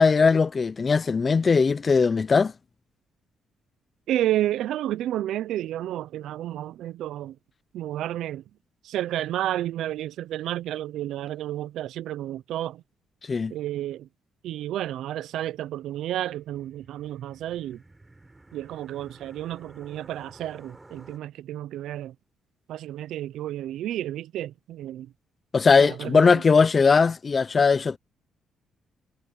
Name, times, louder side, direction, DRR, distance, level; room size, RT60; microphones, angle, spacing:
voice 1, 0.0-2.5 13.3-13.5 25.5-28.0, left 5 dB, 35° left, 0.6 m, -19 dB
voice 2, 4.1-7.4 7.7-8.4 8.8-12.8 13.5-14.1 14.4-17.8 18.5-22.1 22.7-25.1 25.8-26.4, right 13 dB, 80° right, 0.5 m, -31 dB
sound 1, 16.0-21.2, right 2 dB, 15° right, 6.3 m, -52 dB
cardioid pair, 90°, 0 cm